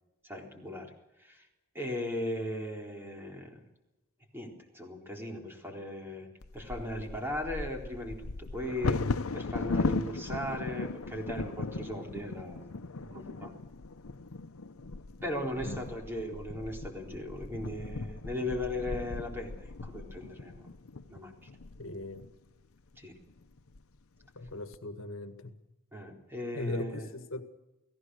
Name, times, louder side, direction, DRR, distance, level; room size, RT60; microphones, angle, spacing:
voice 1, 0.2-0.9 1.2-1.5 1.7-3.6 4.3-6.3 6.5-12.7 13.0-13.5 15.2-20.7 21.1-21.5 23.0-23.2 25.9-27.1, left 1 dB, 10° right, 1 dB, 4.0 m, -38 dB
Bird vocalization bird call bird song / Wind / Thunder, 6.4-22.3 22.9-23.0 23.4-23.8 24.2-24.7, left 3 dB, 90° left, 0.8 m, -37 dB
voice 2, 21.8-22.3 24.4-25.5 26.5-27.4, left 2 dB, 65° left, 8 dB, 1.9 m, -39 dB
29.5 x 17.5 x 6.4 m, 0.98 s
head